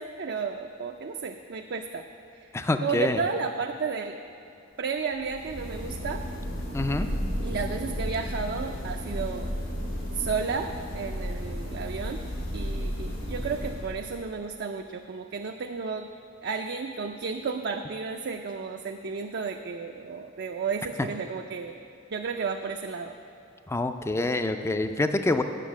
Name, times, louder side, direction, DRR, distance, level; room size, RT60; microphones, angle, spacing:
voice 1, 0.0-2.0 2.3-2.5 2.8-4.2 4.8-6.2 7.4-9.5 10.1-12.2 12.5-16.1 16.4-21.8 22.1-23.1, right 5 dB, 55° right, 3 dB, 0.4 m, -32 dB
voice 2, 2.5-3.2 6.7-7.1 23.7-25.4, left 2 dB, 15° left, 8 dB, 0.4 m, -26 dB
sound 1, 5.1-14.3, equal, 90° left, 2.3 m, -33 dB
9.2 x 6.4 x 7.4 m, 2.7 s
head